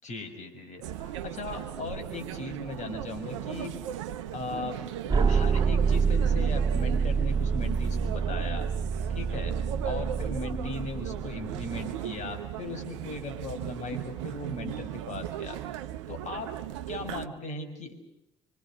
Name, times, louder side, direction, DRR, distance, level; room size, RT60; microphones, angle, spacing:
voice 1, 0.0-3.8 4.3-4.8 5.3-8.7 9.1-9.6 9.8-15.6 16.1-16.5 16.9-17.9, left 3 dB, 50° left, 7 dB, 6.0 m, -38 dB
sound 1, 0.8-17.3, right 11 dB, 80° right, 0.8 m, -37 dB
sound 2, 5.1-12.0, right 5 dB, 30° right, 2.2 m, -27 dB
26.0 x 26.0 x 6.4 m, 0.83 s
hypercardioid pair, 50°, 15 cm